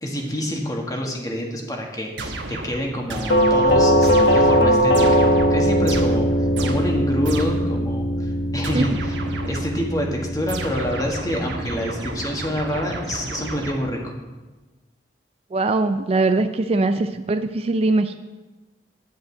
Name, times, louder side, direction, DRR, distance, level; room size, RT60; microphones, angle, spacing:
voice 1, 0.0-5.2 5.5-9.2 9.4-14.1, equal, 20° left, 0 dB, 1.6 m, -27 dB
sound 1, 2.2-7.8 8.6-9.9 10.5-14.2, right 2 dB, 90° right, 1.2 m, -33 dB
Doorbell, 3.3-12.1, equal, 80° left, 1.2 m, -20 dB
voice 2, 15.5-18.2, right 3 dB, 35° right, 10 dB, 0.4 m, -21 dB
11.0 x 5.3 x 8.0 m, 1.2 s
head